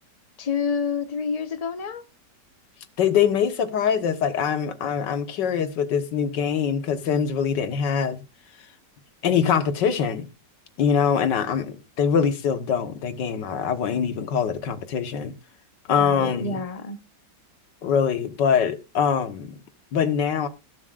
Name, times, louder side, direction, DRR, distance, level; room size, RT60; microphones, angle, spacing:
voice 1, 0.4-2.0 15.9-17.0, left 5 dB, 30° left, 0.8 m, -28 dB
voice 2, 3.0-8.2 9.2-10.3 10.8-15.3 15.9-16.6 17.8-19.6 19.9-20.5, left 7 dB, 80° left, 1.8 m, -23 dB
20.0 x 7.3 x 2.4 m
omnidirectional pair, 1.9 m